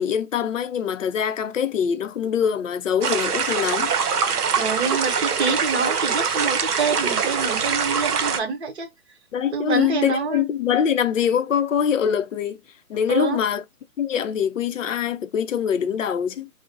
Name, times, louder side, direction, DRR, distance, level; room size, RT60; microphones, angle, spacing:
voice 1, 0.0-3.9 9.3-12.6 12.9-13.6 14.0-16.5, left 8 dB, 60° left, 0.5 m, -23 dB
sound 1, 3.0-8.4, right 6 dB, 90° right, 0.7 m, -23 dB
voice 2, 4.6-8.9 9.5-10.5 13.1-13.4, right 5 dB, 45° right, 1.0 m, -26 dB
2.6 x 2.0 x 2.5 m
figure-of-eight pair, 145°, 45 cm